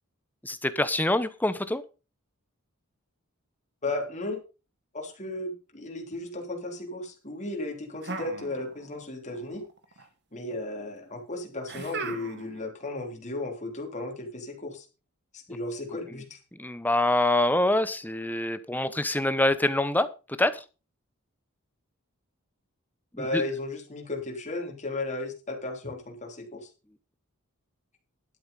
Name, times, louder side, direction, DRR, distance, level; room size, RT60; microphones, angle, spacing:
voice 1, 0.4-1.8 16.6-20.1 20.4-20.6 23.1-23.4, left 1 dB, 10° left, 13 dB, 0.8 m, -25 dB
voice 2, 3.8-4.4 4.9-9.6 10.3-14.8 15.3-16.4 23.2-26.7, left 2 dB, 35° left, 2 dB, 3.4 m, -35 dB
sound 1, 8.0-9.0 9.3-10.0 11.7-12.6, right 3 dB, 50° right, 1.9 m, -38 dB
12.0 x 7.9 x 5.4 m, 0.33 s
head